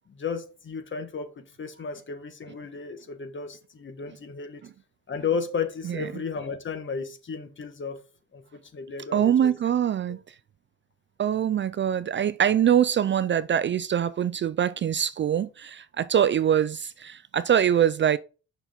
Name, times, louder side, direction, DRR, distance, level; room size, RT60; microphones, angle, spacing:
voice 1, 0.1-4.6 5.1-8.0 8.3-9.5, left 5 dB, 40° left, 1.5 m, -33 dB
voice 2, 9.1-10.2 11.2-18.2, right 9 dB, 40° right, 0.4 m, -23 dB
6.9 x 5.7 x 3.6 m
cardioid pair, 90°, 30 cm